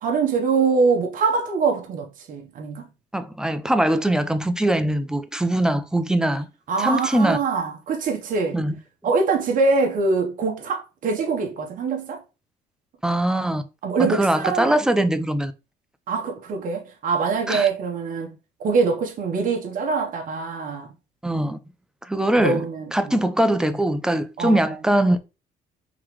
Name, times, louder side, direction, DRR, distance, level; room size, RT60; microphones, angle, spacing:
voice 1, 0.0-2.9 6.7-8.6 9.0-12.2 13.8-14.8 16.1-18.3 18.6-20.9 22.4-23.1 24.4-24.7, right 4 dB, 55° right, 1.0 m, -23 dB
voice 2, 3.1-6.5 6.8-7.4 8.5-8.8 13.0-13.6 14.0-15.5 17.5-17.7 21.2-21.6 22.0-22.7 22.9-25.2, right 1 dB, 5° right, 0.4 m, -21 dB
3.8 x 3.0 x 3.1 m
cardioid pair, 110°, 17 cm